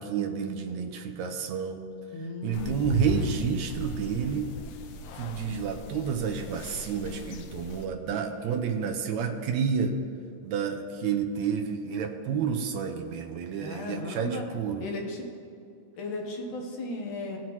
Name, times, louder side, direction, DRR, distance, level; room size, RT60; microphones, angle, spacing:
voice 1, 0.0-1.8 2.4-4.5 5.2-10.0 10.4-14.9, right 7 dB, 75° right, 4 dB, 1.7 m, -30 dB
voice 2, 2.1-3.1 13.6-14.5 14.8-15.3 16.0-17.4, left 2 dB, 70° left, 0 dB, 2.7 m, -36 dB
sound 1, 2.5-7.8, left 5 dB, 90° left, 1.4 m, -37 dB
17.5 x 7.5 x 3.1 m, 2.4 s
omnidirectional pair, 3.8 m